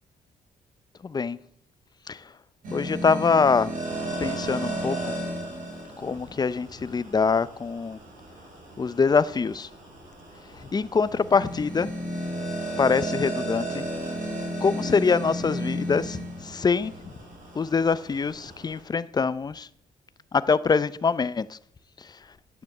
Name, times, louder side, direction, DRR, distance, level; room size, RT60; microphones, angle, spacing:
voice 1, 1.0-1.4 2.1-2.3 2.7-3.7 4.2-5.1 6.0-8.0 8.8-9.7 10.5-11.9 12.8-13.8 14.6-16.9 17.5-19.7 20.3-21.6 22.0-22.2, left 5 dB, 30° left, 0.7 m, -24 dB
sound 1, 2.6-18.8, right 1 dB, 65° right, 6.2 m, -34 dB
10.5 x 9.6 x 7.9 m
cardioid pair, 95°, 15 cm